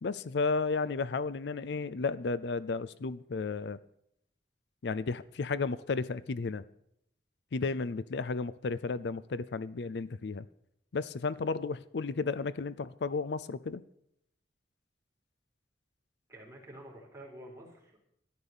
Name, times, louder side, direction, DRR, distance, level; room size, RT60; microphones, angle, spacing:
voice 1, 0.0-3.8 4.8-6.6 7.5-10.5 10.9-13.8, left 4 dB, 65° left, 0.5 m, -33 dB
voice 2, 16.3-18.0, right 1 dB, 15° right, 4.1 m, -49 dB
13.5 x 11.0 x 7.1 m
head